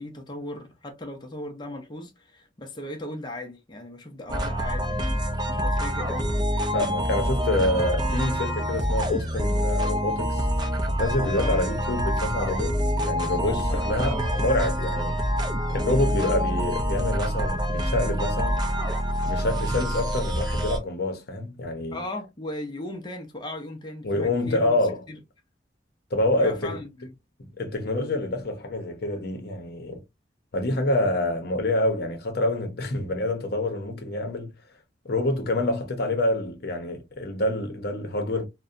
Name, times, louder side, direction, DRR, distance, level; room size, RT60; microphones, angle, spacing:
voice 1, 0.0-5.2 5.5-6.3 11.3-11.6 12.8-13.0 13.4-14.3 21.9-24.8 25.1-25.2 26.4-27.1, left 1 dB, 25° left, 0.5 m, -37 dB
sound 1, 4.3-20.8, equal, 25° right, 0.4 m, -26 dB
voice 2, 6.7-10.4 10.9-15.2 15.7-18.7 19.2-22.0 24.0-25.0 26.1-26.8 27.4-30.0 30.5-34.5 35.0-38.5, left 1 dB, 60° left, 0.7 m, -27 dB
2.6 x 2.1 x 2.4 m
head